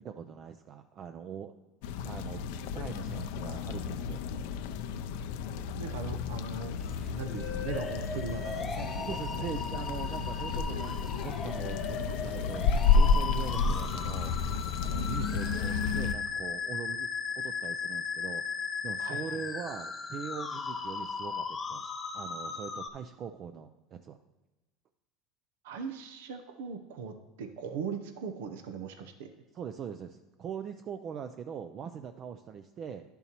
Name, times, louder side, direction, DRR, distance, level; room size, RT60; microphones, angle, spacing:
voice 1, 0.0-1.5 2.0-4.2 9.1-14.3 14.8-17.1 17.4-24.2 29.5-33.0, right 7 dB, 45° right, 8 dB, 0.4 m, -42 dB
sound 1, 1.8-16.1, left 5 dB, 75° left, 0.5 m, -31 dB
voice 2, 5.8-6.8 7.1-9.5 19.0-19.4 25.6-29.3, right 6 dB, 85° right, 7 dB, 0.7 m, -40 dB
sound 2, 6.8-16.7, right 1 dB, 10° right, 0.9 m, -51 dB
sound 3, 7.4-22.9, left 5 dB, 25° left, 1.0 m, -37 dB
11.0 x 6.9 x 3.0 m, 1.1 s
supercardioid pair, 100°, 0 cm